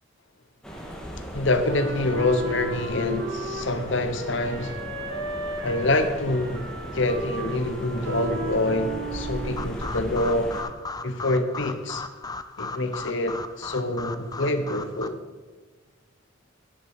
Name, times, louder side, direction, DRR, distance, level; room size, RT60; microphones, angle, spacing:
sound 1, 0.6-10.6, equal, 5° left, 1.8 m, -38 dB
voice 1, 1.3-4.8 5.6-6.7 6.9-10.5 11.0-12.0 12.6-15.2, left 2 dB, 65° left, 1.1 m, -26 dB
Wind instrument woodwind instrument, 1.7-9.8, right 1 dB, 80° right, 1.6 m, -35 dB
sound 2, 9.6-15.1, left 3 dB, 20° left, 0.4 m, -36 dB
9.9 x 9.7 x 5.0 m
head